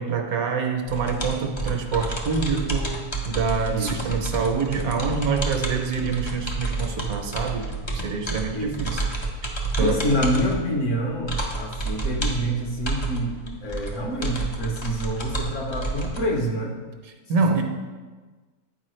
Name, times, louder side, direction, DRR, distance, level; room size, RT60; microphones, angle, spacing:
voice 1, 0.0-9.0 9.8-10.0 17.3-17.6, right 5 dB, 75° right, 4 dB, 1.1 m, -26 dB
sound 1, 0.9-16.2, right 2 dB, 40° left, 0.4 m, -30 dB
voice 2, 3.7-4.1 8.5-8.8 9.8-16.8, equal, 55° left, 0 dB, 1.2 m, -27 dB
8.6 x 4.7 x 3.1 m, 1.3 s
omnidirectional pair, 1.6 m